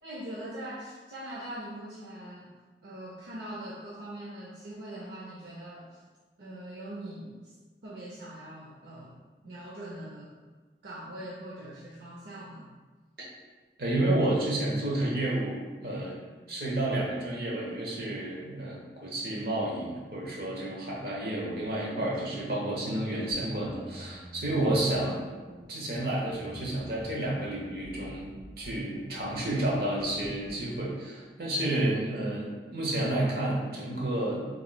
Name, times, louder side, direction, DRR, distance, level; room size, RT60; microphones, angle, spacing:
voice 1, 0.0-2.5 2.8-6.0 6.4-7.6 7.8-10.4 10.8-12.7 16.4-16.5 19.5-19.6 31.9-32.2, right 1 dB, 75° right, -5 dB, 0.5 m, -42 dB
voice 2, 13.8-16.2 16.5-25.4 25.7-34.5, right 1 dB, 60° right, -4 dB, 1.0 m, -30 dB
sound 1, 23.3-30.7, equal, 20° right, 0.5 m, -49 dB
5.0 x 3.0 x 2.2 m, 1.3 s
head